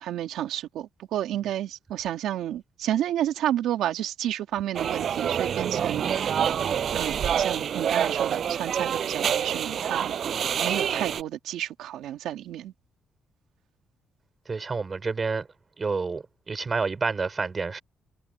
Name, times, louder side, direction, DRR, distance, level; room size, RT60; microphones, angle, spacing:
voice 1, 0.0-6.3 6.9-10.1 10.6-12.7, right 12 dB, 80° right, 2.8 m, -31 dB
sound 1, 4.7-11.2, right 8 dB, 60° right, 7.8 m, -27 dB
voice 2, 14.5-15.5 15.8-17.8, right 4 dB, 35° right, 5.2 m, -29 dB
cardioid pair, 90°, 0 cm